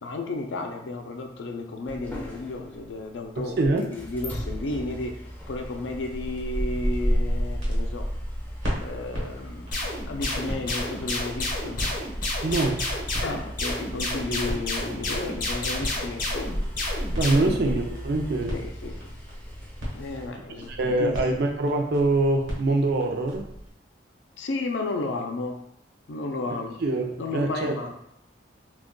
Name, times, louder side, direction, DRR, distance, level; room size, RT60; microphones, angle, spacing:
voice 1, 0.0-5.2 5.5-8.1 8.8-11.8 13.2-16.6 17.3-17.8 18.5-19.0 19.9-21.4 24.4-25.6 26.1-26.8 27.2-27.9, left 2 dB, 85° left, 4 dB, 0.4 m, -33 dB
sound 1, 1.9-20.3, equal, 10° left, 0.4 m, -33 dB
voice 2, 3.4-3.9 12.4-12.8 17.2-18.6 20.7-23.5 26.5-27.8, right 2 dB, 60° right, 3 dB, 0.4 m, -24 dB
sound 2, 6.2-23.7, equal, 85° right, 1.1 m, -38 dB
sound 3, 9.7-17.6, left 2 dB, 50° left, 0.7 m, -30 dB
2.3 x 2.2 x 3.6 m, 0.79 s
head